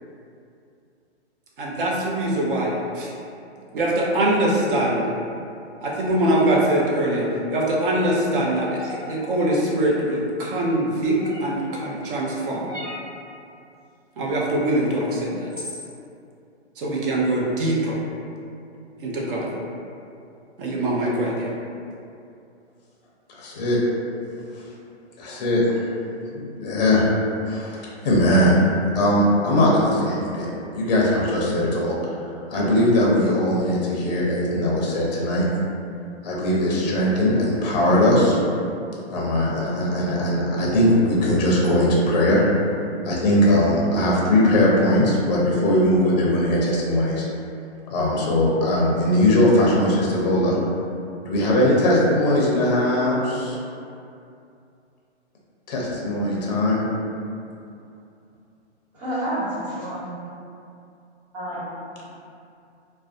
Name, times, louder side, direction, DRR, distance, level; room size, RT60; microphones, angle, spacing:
voice 1, 1.6-3.1 3.7-5.0 5.8-8.8 9.1-12.7 14.2-15.5 16.8-18.0 19.0-19.5 20.6-21.5, right 1 dB, 50° right, -4 dB, 0.6 m, -23 dB
sound 1, 8.8-9.1 11.2-11.6 12.7-13.1 14.8-14.9 15.5-15.9, left 1 dB, 5° right, 1.0 m, -36 dB
voice 2, 23.4-23.8 25.2-25.8 26.3-27.0 27.5-28.6 28.9-31.9 32.5-35.4 36.2-38.4 39.1-42.4 43.0-47.2 47.9-50.6 51.3-53.6 55.7-56.8, left 1 dB, 40° left, -4 dB, 0.5 m, -20 dB
voice 3, 58.9-60.2 61.3-62.1, right 1 dB, 35° right, -11 dB, 1.2 m, -30 dB
2.4 x 2.1 x 2.4 m, 2.5 s
hypercardioid pair, 145°, 34 cm